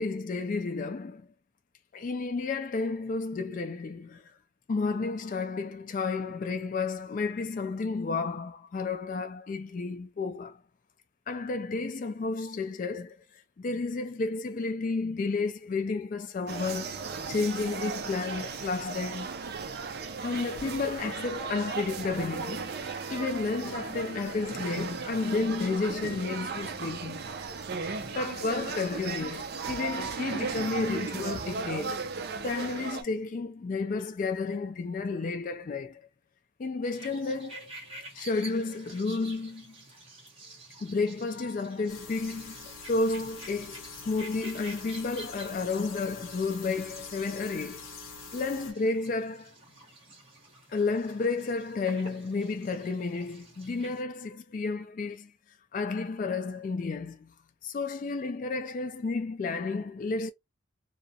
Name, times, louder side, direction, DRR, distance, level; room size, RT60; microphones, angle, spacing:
voice 1, 0.0-1.3 1.9-4.3 4.7-10.6 11.3-19.3 20.2-27.3 28.0-32.0 32.4-36.0 36.6-37.7 38.1-39.8 40.8-47.8 48.3-49.5 50.7-55.3 55.7-57.3 57.6-60.3, left 3 dB, 40° left, 0.3 m, -32 dB
sound 1, 16.5-33.0, right 4 dB, 50° right, 0.4 m, -36 dB
sound 2, 36.8-54.0, right 2 dB, 25° right, 0.9 m, -49 dB
sound 3, 41.9-48.7, left 4 dB, 80° left, 0.7 m, -45 dB
2.4 x 2.1 x 2.7 m
head